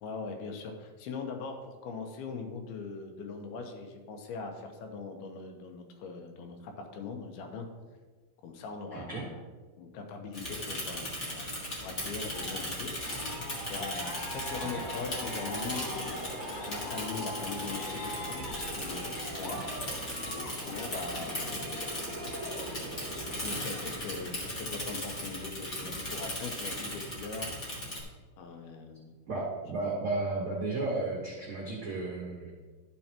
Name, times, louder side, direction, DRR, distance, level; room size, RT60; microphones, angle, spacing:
voice 1, 0.0-7.7 8.4-9.4 9.8-11.5 11.8-12.9 13.7-18.5 18.7-21.9 23.3-27.5 28.4-29.2, left 4 dB, 80° left, 4 dB, 2.8 m, -41 dB
voice 2, 8.9-9.3 14.7-14.8 29.3-32.5, right 3 dB, 75° right, -3 dB, 1.2 m, -33 dB
Bicycle / Mechanisms, 10.3-28.0, left 1 dB, 60° left, 0.7 m, -38 dB
Aircraft, 12.3-23.9, equal, 20° left, 1.9 m, -41 dB
12.0 x 6.9 x 2.9 m, 1.4 s
omnidirectional pair, 4.5 m